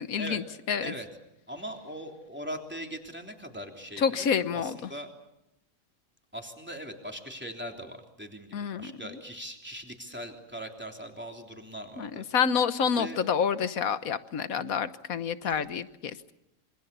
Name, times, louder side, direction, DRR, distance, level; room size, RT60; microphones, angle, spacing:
voice 1, 0.1-0.9 4.0-4.8 8.5-8.9 12.0-16.2, left 7 dB, 85° left, 13 dB, 1.5 m, -28 dB
voice 2, 1.5-5.1 6.3-12.2 13.0-13.2 15.4-15.7, equal, 5° right, 2 dB, 3.3 m, -40 dB
27.0 x 25.0 x 6.9 m, 0.88 s
omnidirectional pair, 1.4 m